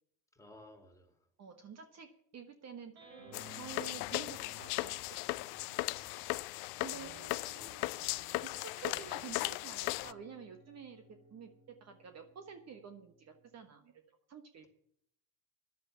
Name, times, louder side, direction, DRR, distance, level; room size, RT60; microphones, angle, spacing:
voice 1, 0.3-1.1 7.5-7.7, left 1 dB, 5° left, 5 dB, 2.7 m, -57 dB
voice 2, 1.4-3.0 3.5-5.2 6.8-7.1 7.4-7.6 8.4-14.0 14.3-14.7, right 6 dB, 40° right, 7 dB, 1.4 m, -50 dB
sound 1, 2.9-6.3 6.8-13.6, right 3 dB, 60° right, 6.1 m, -58 dB
sound 2, 3.3-10.1, left 22 dB, 65° left, 0.6 m, -37 dB
10.5 x 7.6 x 9.3 m, 0.71 s
supercardioid pair, 100°, 41 cm